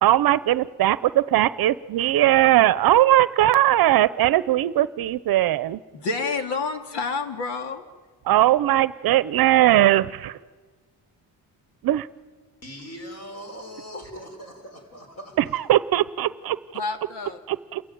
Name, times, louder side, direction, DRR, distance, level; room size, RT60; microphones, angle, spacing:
voice 1, 0.0-5.8 8.2-10.4 11.8-12.1 15.4-16.8 17.5-17.8, right 14 dB, 60° right, 17 dB, 0.8 m, -19 dB
voice 2, 5.9-7.9 16.7-17.4, left 4 dB, 75° left, 7 dB, 2.6 m, -29 dB
voice 3, 12.6-15.6, equal, 40° left, 5 dB, 5.7 m, -40 dB
29.0 x 21.5 x 9.4 m, 1.4 s
cardioid pair, 165°, 41 cm